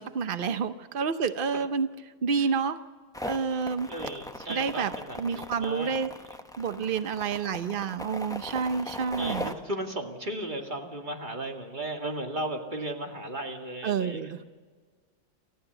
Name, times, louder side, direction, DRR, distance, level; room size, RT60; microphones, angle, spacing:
voice 1, 0.0-1.9 2.2-2.8 3.2-3.9 4.5-4.9 5.2-6.1 6.6-9.5 13.8-14.4, right 6 dB, 85° right, 11 dB, 0.4 m, -29 dB
sound 1, 3.1-9.5, left 1 dB, 5° left, 0.8 m, -38 dB
voice 2, 3.5-6.0 9.2-14.5, right 1 dB, 25° right, 3 dB, 2.2 m, -36 dB
29.0 x 14.5 x 8.0 m, 1.5 s
omnidirectional pair, 2.1 m